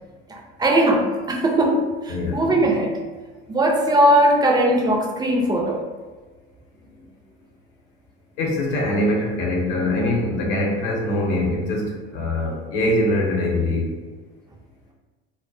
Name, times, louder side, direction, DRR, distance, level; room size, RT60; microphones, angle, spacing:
voice 1, 0.3-2.9 3.5-5.8, right 1 dB, 15° right, 0 dB, 0.4 m, -19 dB
voice 2, 2.1-2.4 8.4-13.9, left 1 dB, 65° left, -1 dB, 0.8 m, -23 dB
2.2 x 2.2 x 2.6 m, 1.3 s
hypercardioid pair, 90°, 30 cm